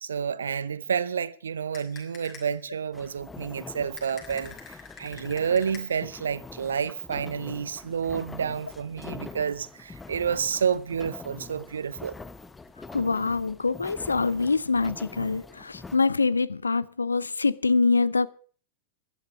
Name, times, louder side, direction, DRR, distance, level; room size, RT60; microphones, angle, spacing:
voice 1, 0.0-12.1, right 7 dB, 70° right, 0.7 m, -29 dB
sound 1, 1.7-2.7 4.0-6.2, left 6 dB, 35° left, 6.0 m, -47 dB
sound 2, 2.9-16.0, left 3 dB, 10° left, 0.8 m, -44 dB
voice 2, 12.9-18.3, left 4 dB, 80° left, 0.6 m, -25 dB
15.0 x 11.5 x 6.0 m
figure-of-eight pair, 90°, 0 cm